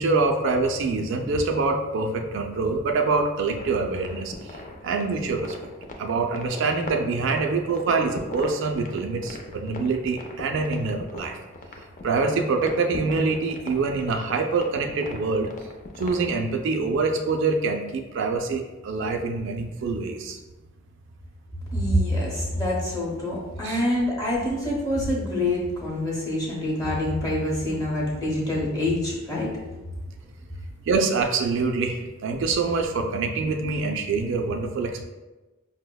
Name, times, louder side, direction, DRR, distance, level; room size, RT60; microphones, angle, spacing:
voice 1, 0.0-5.6 6.0-11.4 12.0-15.5 16.0-20.4 23.6-23.8 30.8-35.0, right 4 dB, 65° right, 3 dB, 0.3 m, -25 dB
sound 1, 3.6-16.4, left 2 dB, 40° left, 0.4 m, -39 dB
voice 2, 21.7-29.6, left 1 dB, 20° left, -4 dB, 0.8 m, -26 dB
5.3 x 2.0 x 2.2 m, 1.1 s
head